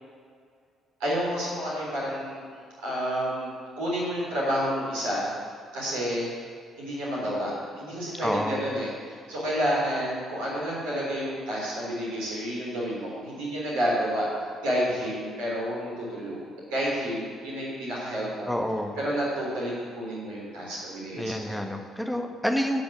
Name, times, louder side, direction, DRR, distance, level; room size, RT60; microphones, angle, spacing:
voice 1, 1.0-2.4 2.8-5.3 5.7-6.3 6.8-14.3 14.6-16.4 16.7-18.5 19.0-21.6, equal, 65° right, -6 dB, 3.8 m, -30 dB
voice 2, 8.2-8.6 18.5-19.0 21.2-22.8, equal, 5° left, 3 dB, 1.5 m, -28 dB
12.0 x 6.1 x 8.6 m, 2.2 s
figure-of-eight pair, 45°, 0 cm